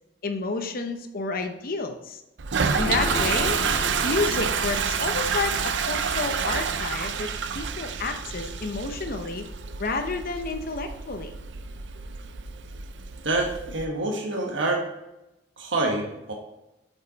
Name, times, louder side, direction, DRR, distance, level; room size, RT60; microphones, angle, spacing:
voice 1, 0.2-2.2 2.8-3.6 4.0-9.5 9.8-11.3, left 3 dB, 50° left, 5 dB, 0.8 m, -30 dB
Toilet flush, 2.4-13.8, right 6 dB, 70° right, 0.5 m, -29 dB
sound 1, 2.6-8.2 8.5-8.6 8.9-9.0, left 1 dB, 15° left, 3.1 m, -35 dB
voice 2, 13.2-14.9 15.6-16.3, right 2 dB, 85° right, 0 dB, 1.2 m, -27 dB
8.6 x 5.5 x 4.0 m, 0.93 s
head